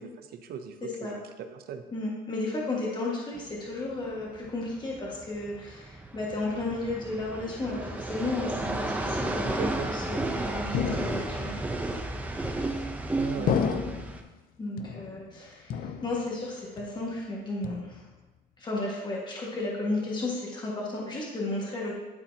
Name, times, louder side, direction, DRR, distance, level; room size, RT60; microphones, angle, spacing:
voice 1, 0.0-0.8 1.0-1.8 9.5-9.9 13.2-13.6, right 7 dB, 65° right, 7 dB, 0.7 m, -38 dB
voice 2, 0.8-1.2 1.9-11.6 13.4-13.5 14.6-18.0 18.6-22.0, left 2 dB, 25° left, -4 dB, 1.8 m, -33 dB
sound 1, 3.4-14.2, right 2 dB, 10° right, 0.7 m, -33 dB
sound 2, 10.7-11.6 12.4-13.0 13.5-14.3 14.8-15.4 15.7-16.5 16.8-17.2 17.6-18.2, left 6 dB, 60° left, 0.6 m, -32 dB
12.0 x 4.2 x 2.9 m, 1.1 s
cardioid pair, 110°, 17 cm